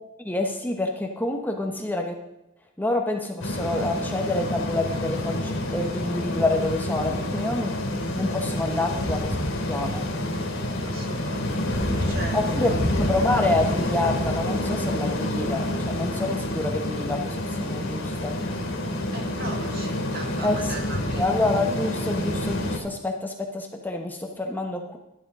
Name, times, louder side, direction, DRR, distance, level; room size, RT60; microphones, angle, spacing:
voice 1, 0.2-2.1 2.8-7.7 8.2-9.4 9.7-10.0 12.3-18.3 20.4-20.7 21.2-25.0, left 2 dB, 10° left, 2 dB, 0.9 m, -27 dB
sound 1, 3.4-22.8, left 1 dB, 70° left, 3.0 m, -28 dB
voice 2, 10.8-12.9 19.1-21.2, right 2 dB, 45° right, 3 dB, 1.8 m, -39 dB
12.0 x 11.5 x 3.7 m, 0.96 s
head